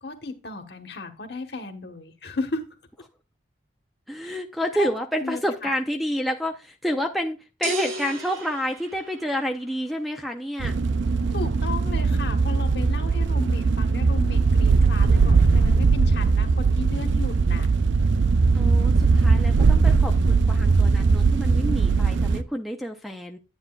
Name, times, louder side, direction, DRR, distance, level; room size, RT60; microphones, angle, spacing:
voice 1, 0.0-2.6 4.2-4.4 4.8-4.9 5.2-5.4 11.3-17.7, left 3 dB, 55° left, 6 dB, 1.3 m, -34 dB
voice 2, 4.1-10.8 18.5-23.4, equal, ahead, 5 dB, 0.6 m, -29 dB
sound 1, 7.6-9.7, right 2 dB, 90° right, 1.5 m, -33 dB
sound 2, 10.6-22.4, right 4 dB, 75° right, 0.5 m, -20 dB
9.7 x 9.3 x 2.4 m, 0.27 s
head